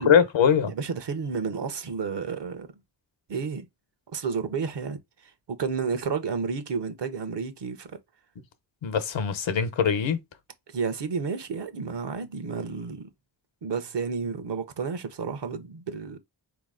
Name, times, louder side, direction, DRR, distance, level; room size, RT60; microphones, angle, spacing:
voice 1, 0.0-0.7 8.8-10.2, left 7 dB, 85° left, 0.9 m, -22 dB
voice 2, 0.7-2.7 3.3-3.7 4.1-8.0 10.7-13.1 13.6-16.2, right 5 dB, 70° right, 0.9 m, -31 dB
4.1 x 3.0 x 3.8 m
cardioid pair, 60°, 44 cm